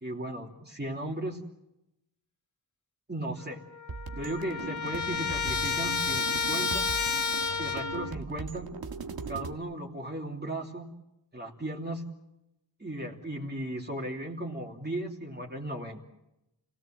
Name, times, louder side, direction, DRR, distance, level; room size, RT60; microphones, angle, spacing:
voice 1, 0.0-1.4 3.1-3.6 4.2-6.9 7.6-8.7 9.3-10.9 11.3-12.0 12.8-16.0, right 1 dB, 25° right, -1 dB, 3.0 m, -36 dB
Trumpet, 3.4-3.5 3.7-8.2, left 5 dB, 45° left, 1.8 m, -31 dB
sound 1, 3.9-9.5, right 4 dB, 60° right, 1.7 m, -40 dB
29.0 x 17.5 x 7.6 m, 0.90 s
wide cardioid pair, 100°, 41 cm